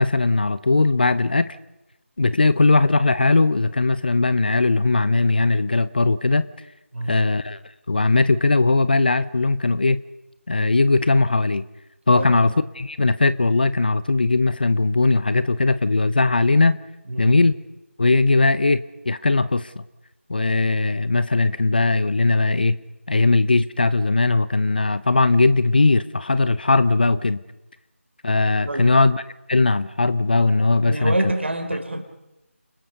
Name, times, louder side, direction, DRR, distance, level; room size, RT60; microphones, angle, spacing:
voice 1, 0.0-1.6 2.2-6.5 7.1-7.6 7.9-10.0 10.5-11.6 12.1-16.8 17.2-17.5 18.0-19.7 20.3-22.8 23.1-27.4 28.2-29.2 29.5-31.2, left 3 dB, 40° left, 0.7 m, -19 dB
voice 2, 6.9-7.2 12.1-12.5 17.1-17.4 28.6-29.0 30.8-32.0, right 1 dB, 55° right, 4.1 m, -27 dB
29.5 x 21.0 x 5.4 m
figure-of-eight pair, 165°, 8 cm